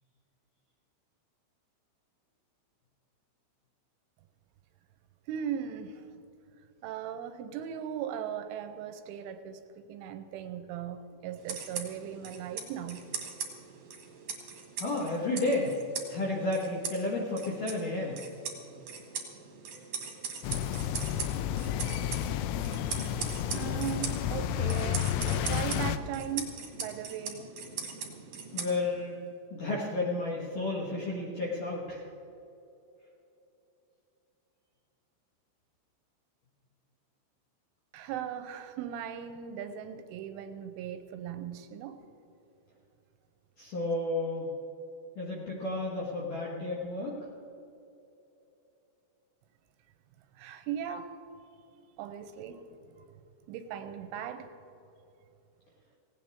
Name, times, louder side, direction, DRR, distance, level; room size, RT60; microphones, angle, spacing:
voice 1, 5.3-6.1 6.8-9.6 9.9-13.0 23.5-27.5 37.9-42.0 50.3-51.1 52.0-52.6 53.0-53.1 53.5-54.5, right 9 dB, 85° right, 9 dB, 2.9 m, -38 dB
sound 1, 11.4-29.1, right 6 dB, 55° right, 1.8 m, -41 dB
voice 2, 14.8-15.8 16.1-18.2 28.5-29.1 29.5-32.0 43.6-44.5 45.2-47.3, left 2 dB, 65° left, -2 dB, 2.2 m, -32 dB
sound 2, 20.4-26.0, left 10 dB, 85° left, 2.8 m, -31 dB
17.5 x 17.5 x 3.6 m, 2.8 s
omnidirectional pair, 5.9 m